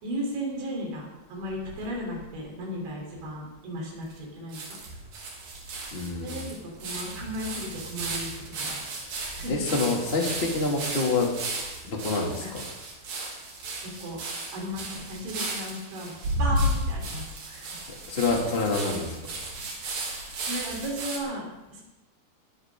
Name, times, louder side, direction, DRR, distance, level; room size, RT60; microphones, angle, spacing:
voice 1, 0.0-4.8 6.2-8.8 9.2-9.7 12.4-12.5 13.8-14.2 14.5-16.1 16.4-17.7 20.4-21.8, equal, 85° right, -2 dB, 6.1 m, -35 dB
sound 1, 1.4-2.3 2.9-3.0 3.1-3.2 4.1-4.2 4.5-21.2, right 1 dB, 55° right, 4.2 m, -34 dB
voice 2, 5.9-6.4 8.7-8.9 9.5-11.3 11.8-12.6 18.1-19.1, left 3 dB, 20° left, -1 dB, 1.7 m, -27 dB
22.0 x 12.0 x 3.8 m, 0.98 s
omnidirectional pair, 5.1 m